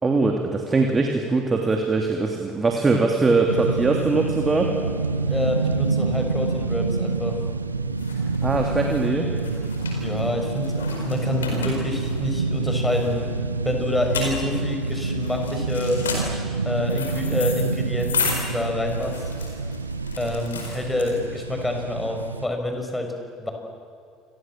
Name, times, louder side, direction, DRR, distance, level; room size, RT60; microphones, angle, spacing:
voice 1, 0.0-4.7 8.4-9.3, right 3 dB, 25° right, 2 dB, 3.1 m, -21 dB
Bowed string instrument, 2.6-5.8, right 2 dB, 65° right, 6.4 m, -47 dB
sound 1, 3.5-22.5, right 3 dB, 90° right, 0.9 m, -27 dB
voice 2, 5.3-7.4 9.9-13.3 13.6-16.0 16.6-19.2 20.2-23.1 23.4-23.5, left 2 dB, 10° left, 4 dB, 6.2 m, -27 dB
sound 2, 7.2-21.5, left 5 dB, 80° left, 4.8 m, -33 dB
28.5 x 24.5 x 7.7 m, 2.5 s
figure-of-eight pair, 60°, 0 cm